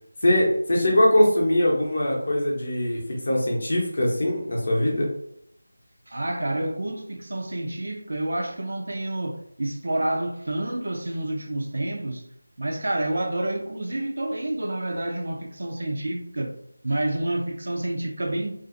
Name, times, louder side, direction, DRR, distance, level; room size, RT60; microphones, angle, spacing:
voice 1, 0.2-5.1, left 1 dB, 40° left, 0.7 m, -22 dB
voice 2, 6.1-12.2 12.6-16.5 16.8-18.5, right 1 dB, 55° right, 0.4 m, -28 dB
2.5 x 2.4 x 2.5 m
figure-of-eight pair, 180°, 0 cm